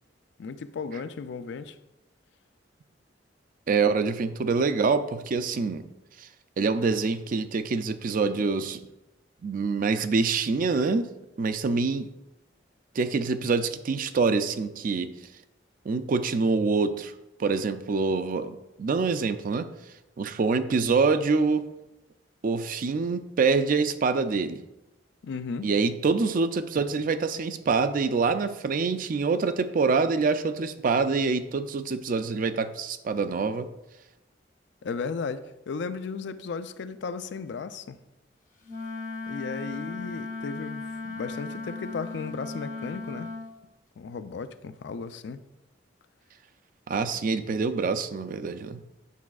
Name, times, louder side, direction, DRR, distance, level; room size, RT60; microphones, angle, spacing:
voice 1, 0.4-1.8 25.2-25.7 34.8-38.0 39.3-43.3 44.0-45.4, left 5 dB, 70° left, 12 dB, 0.4 m, -35 dB
voice 2, 3.7-5.8 6.2-6.3 6.6-8.8 9.4-11.1 11.4-12.1 12.9-15.1 15.8-17.1 17.4-19.7 20.2-21.7 22.4-24.6 25.6-33.7 46.9-48.8, right 4 dB, 50° right, 10 dB, 0.4 m, -25 dB
Wind instrument woodwind instrument, 38.6-43.5, left 3 dB, 45° left, 0.8 m, -36 dB
8.3 x 6.0 x 2.3 m, 0.95 s
head